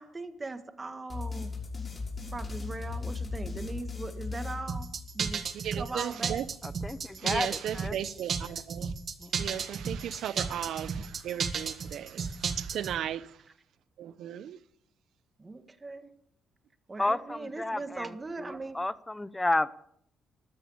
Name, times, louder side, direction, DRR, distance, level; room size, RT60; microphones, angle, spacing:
voice 1, 0.0-1.5 2.3-4.9 5.1-5.5 5.8-6.4 15.4-16.1 16.9-18.8, right 3 dB, 25° right, 1.7 m, -39 dB
sound 1, 1.1-5.4, left 4 dB, 30° left, 6.1 m, -37 dB
sound 2, 4.7-13.0, right 6 dB, 55° right, 1.9 m, -33 dB
voice 2, 5.6-6.5 7.2-8.9 9.3-13.4 14.0-14.6, right 10 dB, 75° right, 0.8 m, -36 dB
voice 3, 6.6-8.0 9.2-9.4 17.0-19.7, left 2 dB, 15° left, 0.8 m, -32 dB
13.5 x 12.5 x 7.1 m
cardioid pair, 90°, 0 cm